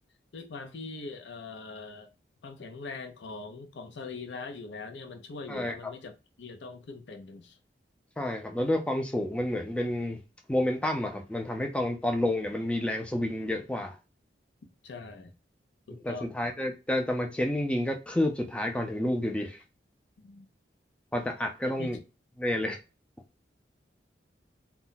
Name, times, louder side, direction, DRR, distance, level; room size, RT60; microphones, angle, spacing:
voice 1, 0.3-2.1 2.4-6.1 6.4-7.6 14.8-15.3 15.9-16.4 20.2-20.5 21.6-22.0, left 3 dB, 85° left, 0.5 m, -42 dB
voice 2, 8.2-10.2 10.5-14.0 15.9-19.6 21.1-22.0 22.4-22.8, left 1 dB, 5° left, 0.3 m, -29 dB
2.2 x 2.0 x 3.8 m
head